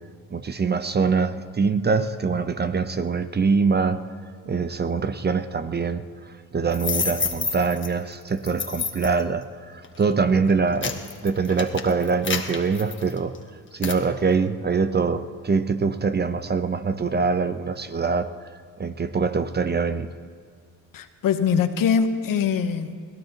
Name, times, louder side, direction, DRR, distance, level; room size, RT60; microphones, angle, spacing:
voice 1, 0.3-4.0 4.5-6.0 6.5-9.5 9.7-11.0 11.2-13.3 13.7-18.3 18.8-20.1, right 5 dB, 30° right, 11 dB, 0.8 m, -23 dB
sound 1, 6.7-7.9 8.4-9.2 9.8-10.1 10.5-13.4 13.8-14.0, left 5 dB, 35° left, 1.4 m, -29 dB
voice 2, 20.9-22.9, left 6 dB, 65° left, 9 dB, 1.0 m, -22 dB
22.0 x 16.0 x 2.9 m, 2.1 s
supercardioid pair, 75°, 35 cm